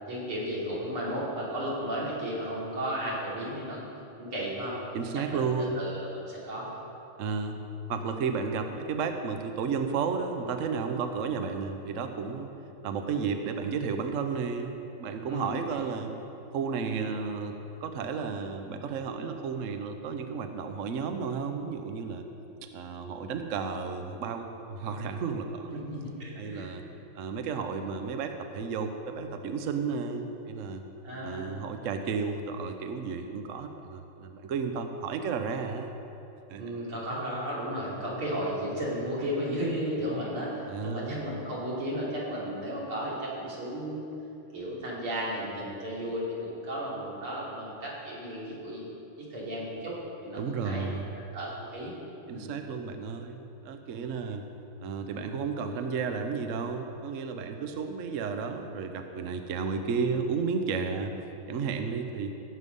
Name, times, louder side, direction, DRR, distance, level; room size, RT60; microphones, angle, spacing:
voice 1, 0.1-3.8 4.2-4.8 5.3-5.5 5.8-6.8 15.3-15.6 25.7-26.7 31.0-31.6 36.6-44.0 44.5-48.9 49.2-50.0 50.2-50.9 51.3-51.9 52.3-52.5, equal, 90° right, -6 dB, 4.0 m, -34 dB
voice 2, 4.9-5.9 7.2-7.6 7.9-12.5 12.8-16.1 16.5-22.3 22.7-25.8 26.4-26.8 27.1-30.8 31.2-35.9 36.5-36.6 40.7-41.2 50.4-51.2 52.3-54.5 54.8-61.2 61.5-62.3, right 5 dB, 60° right, 6 dB, 0.8 m, -32 dB
16.0 x 7.8 x 5.4 m, 2.9 s
omnidirectional pair, 2.3 m